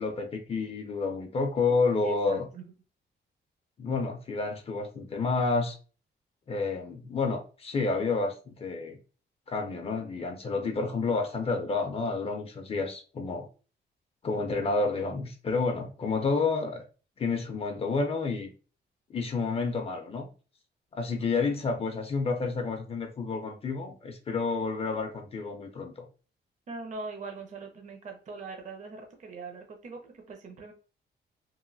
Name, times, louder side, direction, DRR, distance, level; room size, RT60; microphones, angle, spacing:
voice 1, 0.0-2.5 3.8-5.8 6.5-9.0 9.5-13.5 14.2-16.8 17.2-18.5 19.1-20.3 20.9-26.1, left 4 dB, 30° left, 0.4 m, -30 dB
voice 2, 2.0-2.6 26.7-30.7, right 4 dB, 40° right, 0.6 m, -41 dB
3.0 x 2.5 x 2.5 m
wide cardioid pair, 165°, 18 cm